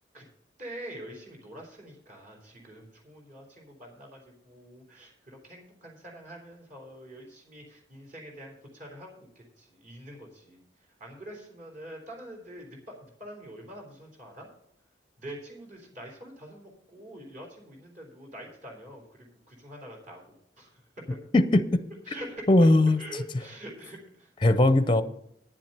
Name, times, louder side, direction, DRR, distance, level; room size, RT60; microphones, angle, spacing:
voice 1, 0.6-10.6 11.0-14.5 15.2-20.2 20.6-20.8 21.1-21.2 22.1-22.5 23.0-24.3, right 1 dB, 45° right, 0 dB, 3.6 m, -45 dB
voice 2, 21.3-21.8 22.5-23.0 24.4-25.0, left 2 dB, 25° left, 12 dB, 0.6 m, -19 dB
10.0 x 7.5 x 6.6 m, 0.73 s
head